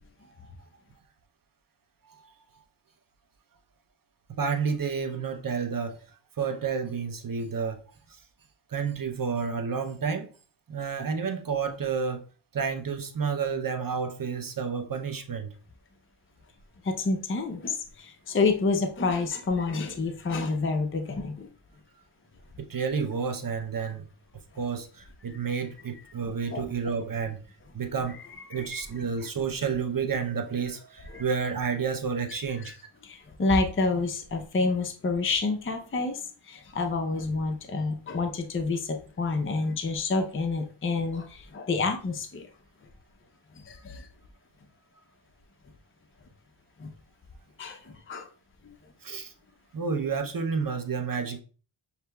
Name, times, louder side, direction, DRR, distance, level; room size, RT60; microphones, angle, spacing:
voice 1, 4.3-6.0 6.4-7.8 8.7-10.3 10.7-12.2 12.5-15.5 22.6-24.1 24.6-27.4 27.7-32.8 49.0-49.3 49.7-51.4, right 5 dB, 45° right, 0.6 m, -30 dB
voice 2, 16.8-21.5 26.5-26.6 28.5-28.7 31.1-31.2 32.6-32.7 33.0-42.5 43.7-44.1 46.8-46.9 47.6-48.3 48.6-48.7, left 3 dB, 25° left, 0.6 m, -28 dB
6.5 x 2.8 x 2.2 m
wide cardioid pair, 65°, 49 cm